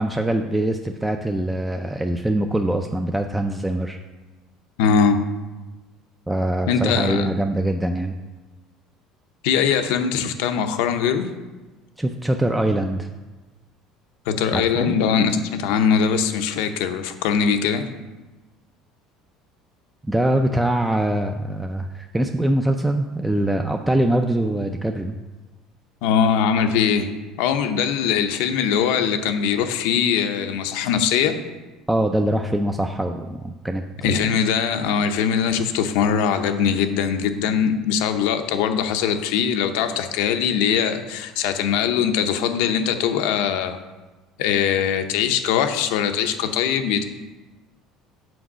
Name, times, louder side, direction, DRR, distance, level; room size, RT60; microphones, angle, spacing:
voice 1, 0.0-4.0 6.3-8.2 12.0-13.1 14.5-14.9 20.1-25.1 31.9-34.2, right 1 dB, 5° right, 4 dB, 0.4 m, -23 dB
voice 2, 4.8-5.2 6.7-7.3 9.4-11.3 14.3-17.9 26.0-27.1 27.4-31.4 34.0-43.8 44.4-47.1, left 7 dB, 85° left, 7 dB, 0.6 m, -21 dB
6.1 x 4.6 x 6.2 m, 1.2 s
cardioid pair, 130°, 0 cm